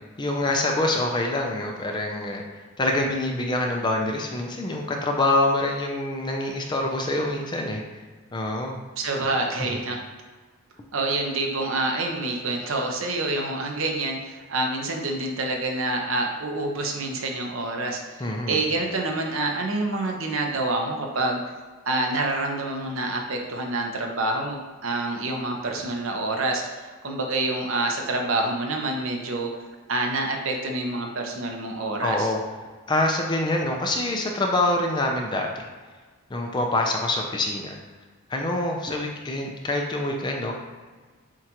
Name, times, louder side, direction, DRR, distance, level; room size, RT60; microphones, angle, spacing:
voice 1, 0.2-7.8 8.3-8.8 9.7-9.8 18.2-18.6 32.0-32.4 32.9-35.7 36.3-37.8 38.3-40.5, left 2 dB, 20° left, 1 dB, 0.4 m, -25 dB
voice 2, 9.0-10.0 10.9-21.4 21.9-29.5 29.9-32.3, right 2 dB, 70° right, 2 dB, 0.7 m, -27 dB
7.3 x 2.4 x 2.9 m, 1.4 s
head